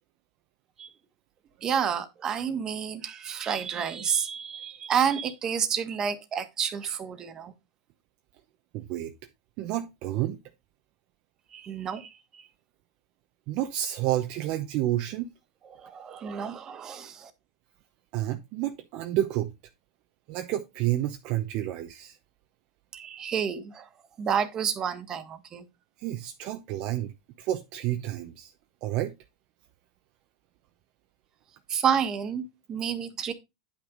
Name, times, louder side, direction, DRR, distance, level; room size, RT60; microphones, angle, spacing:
voice 1, 1.6-7.5 11.5-12.5 15.7-17.3 22.9-23.9 24.2-25.6 31.7-33.3, right 7 dB, 30° right, 1.5 m, -30 dB
voice 2, 8.7-9.1 9.6-10.4 13.5-15.3 18.1-19.5 20.3-22.2 26.0-27.1 27.4-28.5 28.8-29.1, right 13 dB, 50° right, 0.9 m, -30 dB
9.8 x 6.0 x 3.9 m
supercardioid pair, 130°, 2 cm